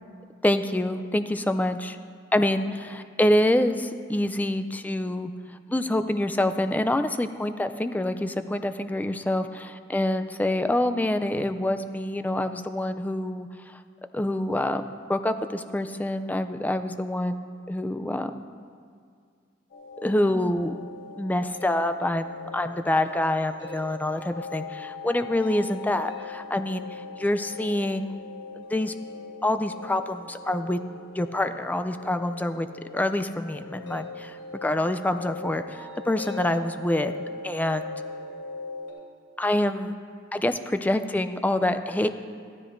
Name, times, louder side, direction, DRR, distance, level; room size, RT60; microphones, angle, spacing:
voice 1, 0.4-2.0 2.3-5.3 5.7-13.5 14.1-17.4 17.7-18.4 20.0-20.7 21.2-26.8 27.2-28.1 28.7-28.9 29.4-30.8 31.2-32.7 32.9-34.4 34.6-37.1 37.4-37.8 39.4-39.9 40.4-42.1, left 1 dB, 10° left, 9 dB, 0.3 m, -26 dB
sound 1, 19.7-38.9, left 4 dB, 90° left, 3.3 m, -40 dB
15.0 x 13.0 x 2.6 m, 2.1 s
head